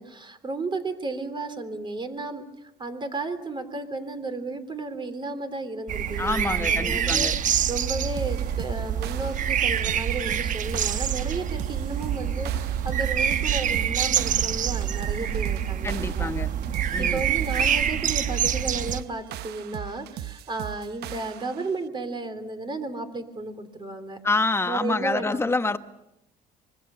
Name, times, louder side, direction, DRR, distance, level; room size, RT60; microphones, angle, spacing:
voice 1, 0.0-16.3 17.0-24.2 24.6-25.4, right 3 dB, 30° right, 9 dB, 3.2 m, -33 dB
sound 1, 5.9-19.0, right 9 dB, 50° right, 1.0 m, -26 dB
voice 2, 6.2-7.4 15.8-16.5 16.9-17.2 24.2-25.8, left 3 dB, 15° left, 10 dB, 1.3 m, -26 dB
sound 2, 8.2-21.7, right 12 dB, 75° right, 0.8 m, -39 dB
25.5 x 22.0 x 6.9 m, 0.86 s
cardioid pair, 110°, 17 cm